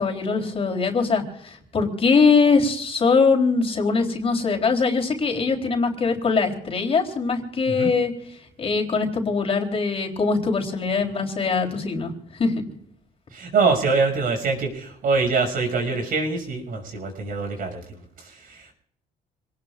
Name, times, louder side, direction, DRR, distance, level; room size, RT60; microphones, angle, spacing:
voice 1, 0.0-8.1 8.6-12.6, left 4 dB, 35° left, 1 dB, 3.7 m, -22 dB
voice 2, 13.3-17.8 18.5-18.7, right 4 dB, 55° right, 4 dB, 6.1 m, -24 dB
27.0 x 19.0 x 2.5 m, 0.70 s
cardioid pair, 110°, 17 cm